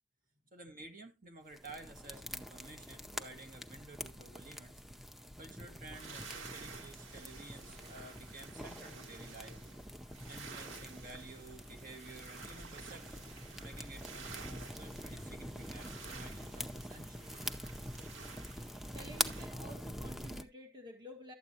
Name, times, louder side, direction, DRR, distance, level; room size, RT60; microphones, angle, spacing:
voice 1, 0.5-4.8 5.4-9.6 10.3-13.3 13.6-17.4, right 2 dB, 45° right, 1.6 m, -52 dB
sound 1, 1.5-20.4, equal, ahead, 0.6 m, -45 dB
sound 2, 5.9-19.5, right 5 dB, 85° right, 1.4 m, -52 dB
voice 2, 18.9-21.3, equal, 25° right, 1.5 m, -51 dB
12.5 x 8.1 x 2.8 m
head